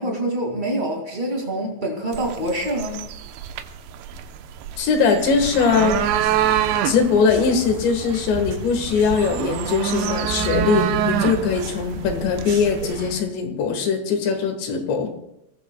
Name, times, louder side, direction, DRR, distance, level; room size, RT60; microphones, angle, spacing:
voice 1, 0.0-3.0, right 1 dB, 25° right, -1 dB, 0.9 m, -25 dB
sound 1, 2.1-13.0, right 10 dB, 85° right, 3.2 m, -27 dB
voice 2, 4.8-6.0 6.8-15.1, left 5 dB, 80° left, 5 dB, 3.8 m, -21 dB
sound 2, 5.4-13.2, right 3 dB, 65° right, 5.4 m, -33 dB
27.5 x 19.5 x 2.3 m, 0.79 s
omnidirectional pair, 5.1 m